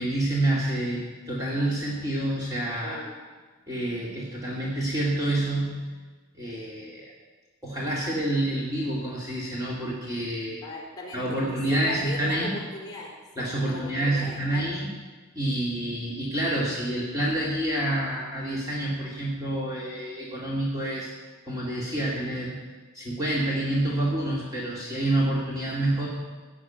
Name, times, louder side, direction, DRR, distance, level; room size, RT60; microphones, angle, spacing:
voice 1, 0.0-3.0 3.7-5.8 6.3-7.1 7.6-10.6 11.1-12.6 13.4-14.9 15.3-21.1 21.5-22.6 22.9-26.1, right 1 dB, 15° right, -5 dB, 2.4 m, -28 dB
voice 2, 2.8-3.1 10.6-11.4 11.7-14.7, left 2 dB, 20° left, -1 dB, 4.3 m, -38 dB
16.5 x 6.4 x 9.2 m, 1.4 s
head